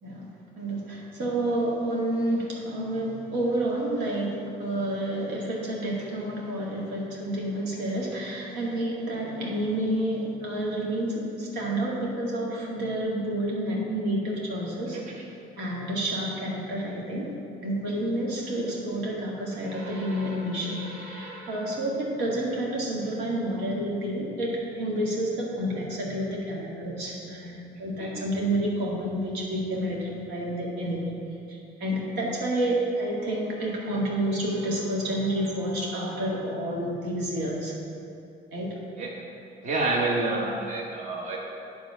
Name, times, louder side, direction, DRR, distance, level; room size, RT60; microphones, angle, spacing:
voice 1, 0.6-15.0 15.6-17.3 17.6-31.1 31.5-37.8 38.5-38.7, right 1 dB, 85° right, -4 dB, 1.8 m, -29 dB
voice 2, 14.9-15.2 28.0-28.2 39.0-39.1 39.6-41.4, right 2 dB, 45° right, -2 dB, 1.1 m, -28 dB
9.5 x 3.6 x 6.3 m, 2.7 s
cardioid pair, 110°, 17 cm